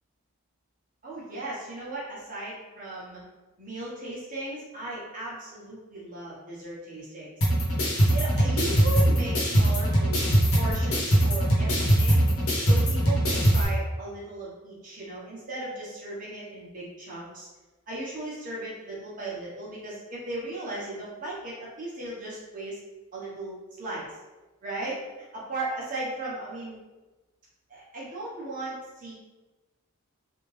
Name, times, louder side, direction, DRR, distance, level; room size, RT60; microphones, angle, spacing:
voice 1, 1.0-3.2 3.6-7.4 7.7-7.8 8.1-12.2 12.6-17.5 17.9-22.8 23.1-24.1 24.6-25.0 25.3-26.8 27.7-29.1, right 2 dB, 35° right, -7 dB, 1.1 m, -36 dB
sound 1, 7.4-13.6, right 1 dB, 70° left, 1.1 m, -22 dB
3.2 x 2.6 x 3.3 m, 1.2 s
head